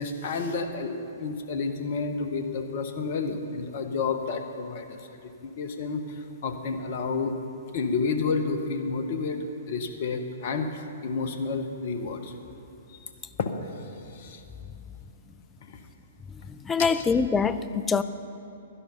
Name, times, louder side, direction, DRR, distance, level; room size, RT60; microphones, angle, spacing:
voice 1, 0.0-5.0 5.4-7.3 7.7-12.3 12.9-13.1 13.4-13.5 14.1-14.4 15.7-15.8 16.8-17.0, left 4 dB, 50° left, 7 dB, 1.0 m, -30 dB
voice 2, 16.5-18.0, left 5 dB, 15° left, 13 dB, 0.4 m, -24 dB
12.0 x 11.0 x 5.5 m, 2.9 s
figure-of-eight pair, 115°, 0 cm